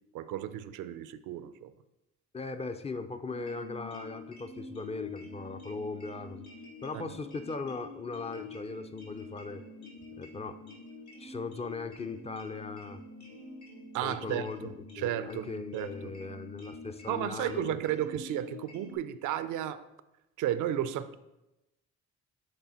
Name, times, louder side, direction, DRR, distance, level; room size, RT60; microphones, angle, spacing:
voice 1, 0.1-1.7 6.9-7.1 13.9-16.1 17.1-19.9 20.4-21.2, right 11 dB, 80° right, 0.4 m, -34 dB
voice 2, 2.3-6.5 6.8-9.6 10.2-10.6 11.2-13.0 14.0-17.8, left 3 dB, 20° left, 0.4 m, -39 dB
sound 1, 3.3-19.0, left 3 dB, 75° left, 2.0 m, -47 dB
8.1 x 3.3 x 4.2 m
cardioid pair, 90°, 30 cm